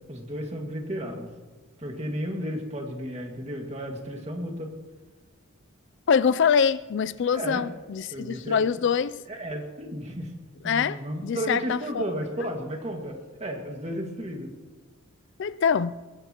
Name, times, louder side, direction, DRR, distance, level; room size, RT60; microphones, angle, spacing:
voice 1, 0.1-1.3 1.8-4.7 7.3-7.6 8.1-8.6 9.3-10.3 10.6-14.5, equal, 30° right, 2 dB, 2.0 m, -33 dB
voice 2, 6.1-9.2 10.6-12.0 15.4-16.0, left 6 dB, 55° left, 16 dB, 0.4 m, -24 dB
21.5 x 17.5 x 3.0 m, 1.3 s
head